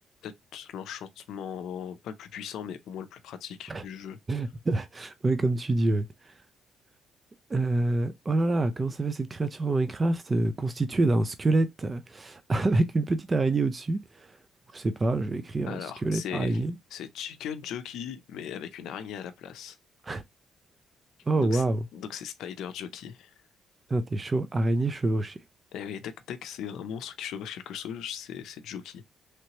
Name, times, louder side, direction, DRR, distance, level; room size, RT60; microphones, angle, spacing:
voice 1, 0.2-4.2 15.7-16.6 16.9-19.8 21.3-23.3 25.7-29.0, left 8 dB, 80° left, 0.5 m, -38 dB
voice 2, 4.3-6.3 7.5-14.4 14.7-16.8 20.0-20.2 21.3-21.8 23.9-25.4, right 2 dB, 30° right, 0.4 m, -27 dB
3.2 x 2.9 x 2.8 m
cardioid pair, 90°, 0 cm